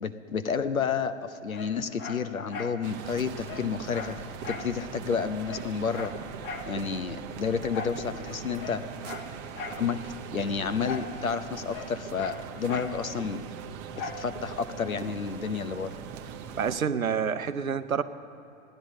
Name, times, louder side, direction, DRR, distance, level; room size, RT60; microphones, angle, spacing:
voice 1, 0.0-4.2 4.5-6.1 6.7-8.8 9.7-13.4 14.0-15.9, left 6 dB, 85° left, 11 dB, 0.8 m, -30 dB
Dog, 1.5-2.8 3.1-3.2 3.4-4.7 5.1-5.2 5.4-6.7 7.7-8.0 8.5-9.9 10.8-11.2 11.4-13.0 14.0-14.3 14.8-14.9, left 4 dB, 40° left, 1.2 m, -39 dB
sound 1, 2.8-16.8, right 7 dB, 30° right, 0.8 m, -41 dB
voice 2, 16.6-18.0, right 7 dB, 85° right, 12 dB, 0.7 m, -28 dB
15.5 x 10.0 x 6.3 m, 3.0 s
figure-of-eight pair, 105°, 40 cm